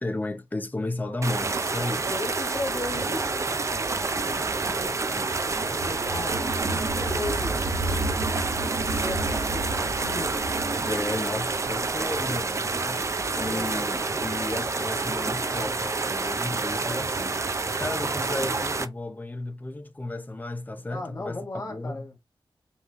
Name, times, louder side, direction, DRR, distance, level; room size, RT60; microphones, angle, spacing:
voice 1, 0.0-2.0 10.9-13.0 13.4-22.0, left 2 dB, 20° left, 0.6 m, -33 dB
sound 1, 1.2-18.9, right 3 dB, 30° right, 0.4 m, -28 dB
voice 2, 2.1-3.5 4.1-4.6 5.6-7.8 8.9-10.4 13.3-13.7 20.9-22.1, left 2 dB, 40° left, 1.8 m, -36 dB
sound 2, 4.2-12.9, right 2 dB, 65° right, 1.0 m, -33 dB
5.4 x 3.0 x 2.4 m
wide cardioid pair, 165°, 9 cm